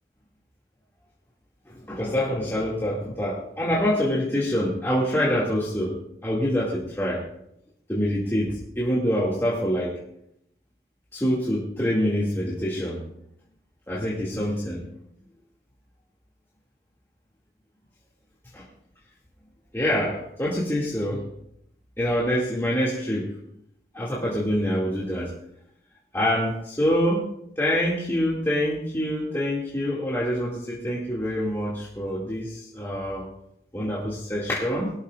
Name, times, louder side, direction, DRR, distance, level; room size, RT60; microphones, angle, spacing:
voice 1, 1.7-7.2 7.9-10.0 11.1-13.0 13.9-14.8 18.5-18.6 19.7-21.3 22.0-23.3 23.9-25.3 26.1-27.3 27.6-33.3 33.7-34.9, equal, 15° left, -6 dB, 2.3 m, -26 dB
21.5 x 13.5 x 2.5 m, 0.76 s
head